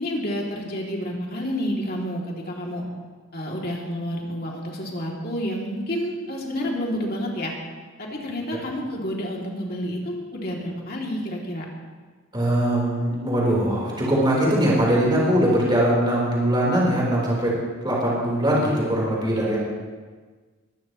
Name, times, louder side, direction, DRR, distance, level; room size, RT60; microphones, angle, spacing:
voice 1, 0.0-2.8 3.3-7.5 8.0-11.7, equal, 45° left, -2 dB, 2.9 m, -29 dB
voice 2, 12.3-17.5 17.8-19.6, right 1 dB, 20° right, -5 dB, 4.3 m, -21 dB
22.0 x 14.0 x 3.2 m, 1.4 s
head